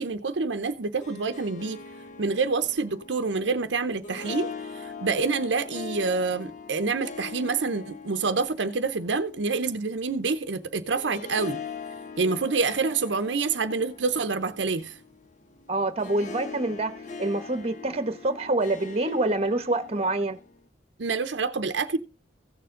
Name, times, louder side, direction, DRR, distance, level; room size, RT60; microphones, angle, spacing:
voice 1, 0.0-1.8 2.2-4.5 4.7-11.6 12.2-15.0 21.0-22.0, right 4 dB, 75° right, 0.7 m, -27 dB
Harp, 0.8-20.6, left 4 dB, 40° left, 1.0 m, -42 dB
voice 2, 15.7-16.9 17.2-20.4, right 2 dB, 35° right, 1.0 m, -26 dB
16.0 x 6.9 x 3.8 m
head